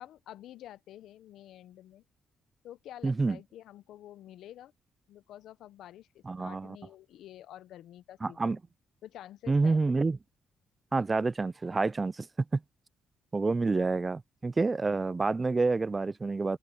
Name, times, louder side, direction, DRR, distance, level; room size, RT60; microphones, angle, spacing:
voice 1, 0.0-2.0 2.6-4.7 5.1-8.6 9.0-9.8, left 12 dB, 80° left, 0.7 m, -49 dB
voice 2, 3.0-3.4 6.3-6.8 8.2-8.6 9.5-10.2 10.9-12.3 12.5-12.6 13.3-16.6, right 3 dB, 25° right, 0.3 m, -28 dB
open air
cardioid pair, 90°, 0 cm